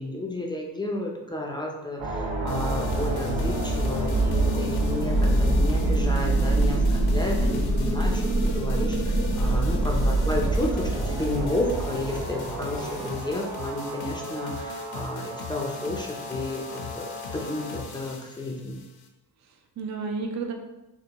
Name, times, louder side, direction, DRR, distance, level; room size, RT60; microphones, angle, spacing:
voice 1, 0.0-18.8, left 2 dB, 10° left, -1 dB, 0.5 m, -32 dB
sound 1, 2.0-17.8, right 1 dB, 75° right, 0.9 m, -26 dB
sound 2, 2.5-19.1, left 6 dB, 55° left, 0.7 m, -41 dB
voice 2, 10.0-10.3 19.4-20.5, right 4 dB, 35° right, 3 dB, 0.6 m, -33 dB
6.5 x 2.2 x 3.0 m, 1.0 s
cardioid pair, 105°, 47 cm